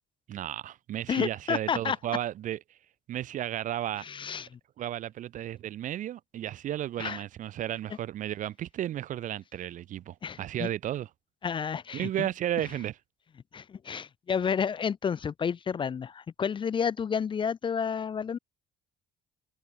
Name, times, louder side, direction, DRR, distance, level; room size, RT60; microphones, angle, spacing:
voice 1, 0.3-2.6 3.1-4.0 4.8-11.1 11.9-12.9, right 12 dB, 50° right, 0.4 m, -33 dB
voice 2, 1.1-2.0 4.0-4.6 7.0-7.2 10.2-10.7 11.4-12.1 13.5-18.4, left 7 dB, 30° left, 0.5 m, -30 dB
cardioid pair, 110°, 17 cm